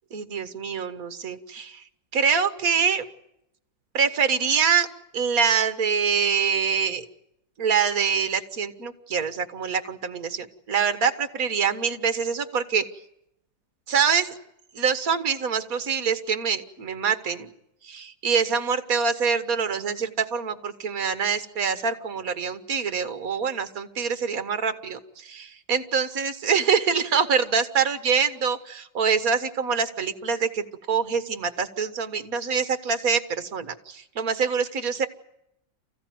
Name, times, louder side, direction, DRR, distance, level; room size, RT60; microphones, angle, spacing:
voice 1, 0.1-1.8 2.1-3.1 3.9-4.9 5.1-7.0 7.6-12.9 13.9-14.3 14.8-17.5 17.8-30.6 30.9-35.1, right 6 dB, 50° right, 9 dB, 1.8 m, -25 dB
29.0 x 15.5 x 9.4 m, 0.82 s
omnidirectional pair, 2.1 m